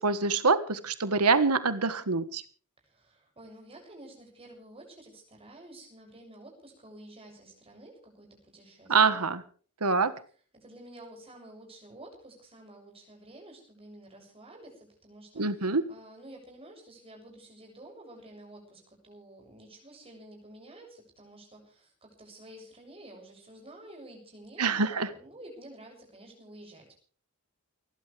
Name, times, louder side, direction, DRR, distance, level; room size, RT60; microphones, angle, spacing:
voice 1, 0.0-2.4 8.9-9.4 9.8-10.1 15.4-15.8 24.6-25.1, right 4 dB, 85° right, 13 dB, 1.5 m, -25 dB
voice 2, 2.8-9.3 10.5-26.9, right 1 dB, 25° right, 2 dB, 7.4 m, -50 dB
29.5 x 12.0 x 3.4 m, 0.42 s
head